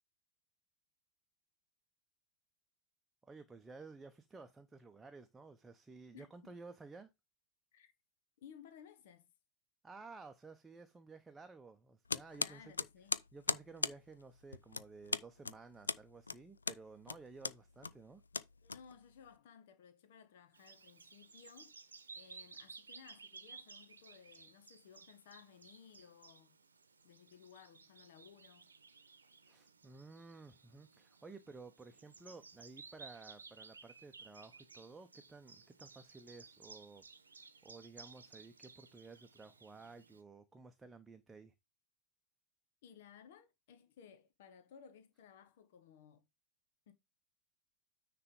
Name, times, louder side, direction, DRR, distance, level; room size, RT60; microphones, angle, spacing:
voice 1, 3.2-7.1 9.8-12.7 13.3-18.2 29.4-37.1 37.6-41.5, right 4 dB, 10° right, 0.8 m, -54 dB
voice 2, 6.1-6.6 7.7-7.9 8.4-9.3 12.4-13.2 18.6-21.8 22.1-26.6 27.0-28.6 42.8-46.3 46.9-47.0, left 7 dB, 55° left, 1.0 m, -59 dB
sound 1, 12.1-19.3, left 4 dB, 75° left, 0.4 m, -40 dB
Bird vocalization bird call bird song, 20.5-40.2, right 4 dB, 75° right, 0.9 m, -57 dB
9.6 x 3.4 x 5.3 m
figure-of-eight pair, 90°, 0 cm